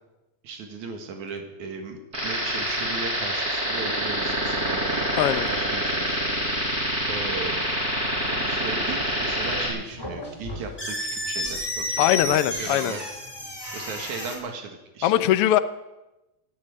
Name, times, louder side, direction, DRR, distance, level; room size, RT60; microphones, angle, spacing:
voice 1, 0.4-5.1 5.5-6.8 7.1-7.8 8.3-13.0 13.7-15.3, right 4 dB, 80° right, 4 dB, 3.1 m, -37 dB
sound 1, 2.1-9.7, equal, 30° right, 6.9 m, -26 dB
voice 2, 5.2-5.5 12.0-12.9 15.0-15.6, left 13 dB, 75° left, 12 dB, 1.4 m, -21 dB
sound 2, 9.3-14.4, left 1 dB, 10° left, 3.1 m, -32 dB
17.0 x 8.8 x 9.6 m, 1.0 s
omnidirectional pair, 3.3 m